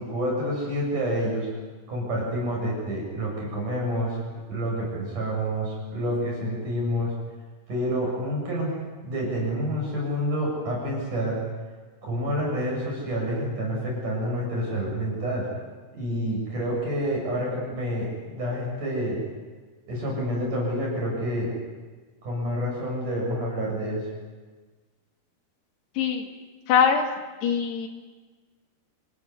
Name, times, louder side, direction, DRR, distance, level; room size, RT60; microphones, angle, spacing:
voice 1, 0.0-1.5 1.9-4.2 4.5-7.1 7.7-8.7 9.0-11.4 12.0-15.5 16.0-19.2 19.9-21.5 22.2-24.0, equal, 50° right, -2 dB, 8.8 m, -28 dB
voice 2, 26.0-26.3 26.7-27.1 27.4-27.9, left 7 dB, 75° left, 1 dB, 4.2 m, -22 dB
28.0 x 16.0 x 9.8 m, 1.3 s
omnidirectional pair, 4.8 m